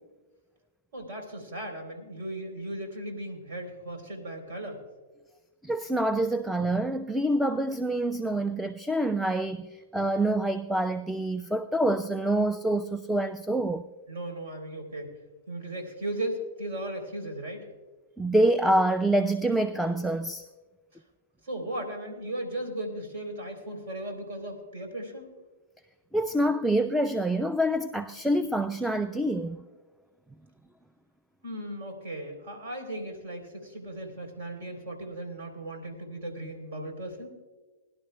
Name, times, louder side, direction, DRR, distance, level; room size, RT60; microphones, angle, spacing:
voice 1, 0.9-4.8 14.1-15.1 15.5-17.7 20.9-21.0 21.4-25.3 31.4-37.3, right 1 dB, 60° right, 3.3 m, -36 dB
voice 2, 5.6-13.8 18.2-20.4 26.1-29.6, right 1 dB, ahead, 0.4 m, -26 dB
21.5 x 11.5 x 2.2 m
hypercardioid pair, 115°, 0 cm